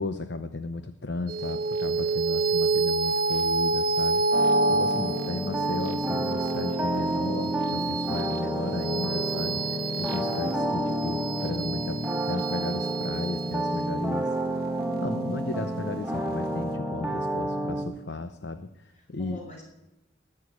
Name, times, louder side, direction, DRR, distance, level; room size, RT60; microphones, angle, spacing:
voice 1, 0.0-4.2 4.7-14.3 15.0-19.4, left 2 dB, 60° left, 9 dB, 0.8 m, -35 dB
sound 1, 1.3-16.0, right 2 dB, 50° right, 1.1 m, -29 dB
sound 2, 4.3-17.8, right 1 dB, 5° right, 3.1 m, -30 dB
voice 2, 4.6-5.1 18.9-19.6, left 2 dB, 40° left, -1 dB, 5.5 m, -46 dB
19.5 x 6.9 x 9.7 m, 0.92 s
head